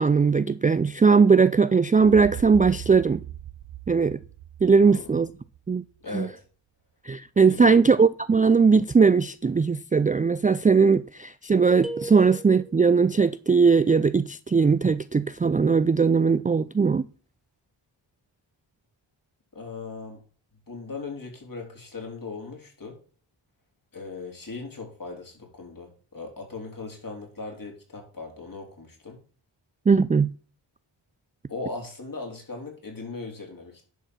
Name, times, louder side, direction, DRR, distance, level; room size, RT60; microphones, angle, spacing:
voice 1, 0.0-3.2 3.9-4.2 4.6-5.3 5.7-5.8 6.1-6.3 7.1-17.0 29.9-30.3, right 5 dB, 20° right, 0.3 m, -19 dB
sound 1, 2.0-5.9, right 13 dB, 75° right, 0.7 m, -40 dB
voice 2, 4.8-5.1 6.0-6.3 7.5-7.8 19.5-20.2 20.7-23.0 23.9-29.2 31.5-33.9, left 3 dB, 40° left, 3.9 m, -38 dB
sound 2, 11.8-13.0, right 2 dB, ahead, 1.1 m, -37 dB
11.0 x 4.6 x 6.1 m
cardioid pair, 60°, 48 cm